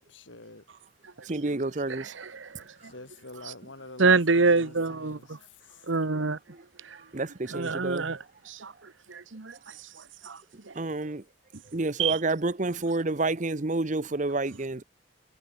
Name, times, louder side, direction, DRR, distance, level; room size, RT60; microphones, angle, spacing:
voice 1, 0.1-0.6 2.8-5.3 5.6-5.8, left 2 dB, 70° left, 4.4 m, -45 dB
voice 2, 1.3-2.1 7.1-8.0 10.8-11.2 11.7-14.8, right 2 dB, 40° right, 0.9 m, -29 dB
voice 3, 1.9-2.5 3.4-3.5 4.0-5.4 5.9-6.4 6.9-7.0 7.5-8.7 9.1-9.6 10.2-10.4 12.0-12.2, right 4 dB, 75° right, 1.2 m, -26 dB
head